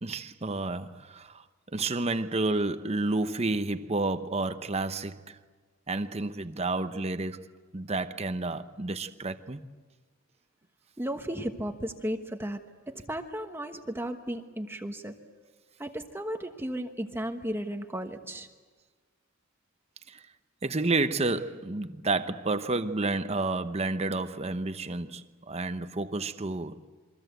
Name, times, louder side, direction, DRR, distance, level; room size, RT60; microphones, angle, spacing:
voice 1, 0.0-1.4 1.7-5.4 5.9-7.5 7.7-9.6 20.1-20.2 20.6-26.8, right 2 dB, 30° right, 0.9 m, -30 dB
voice 2, 11.0-12.6 12.9-15.2 15.8-18.5, right 1 dB, 10° right, 1.2 m, -34 dB
28.0 x 23.5 x 8.0 m
head